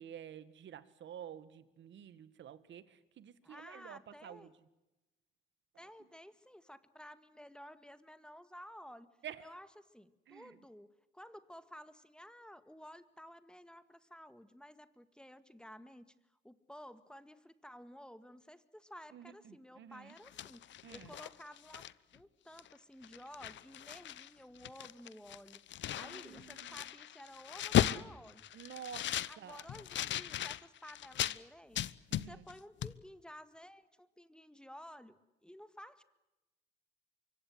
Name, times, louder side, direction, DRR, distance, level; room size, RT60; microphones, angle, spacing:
voice 1, 0.0-4.5 9.2-9.4 10.3-10.5 19.1-20.2 20.8-21.1 26.0-26.8 28.5-29.6 32.1-32.4, right 9 dB, 70° right, 15 dB, 1.9 m, -50 dB
voice 2, 3.4-4.5 5.8-16.1 16.4-21.8 22.1-28.4 29.3-31.9 32.2-36.0, equal, 5° left, 12 dB, 1.8 m, -54 dB
sound 1, 20.1-22.2 22.6-22.7 23.0-24.3 24.6-31.4 31.8-32.6 32.8-33.0, left 12 dB, 70° left, 0.9 m, -37 dB
25.0 x 24.0 x 7.9 m, 1.0 s
cardioid pair, 90°, 20 cm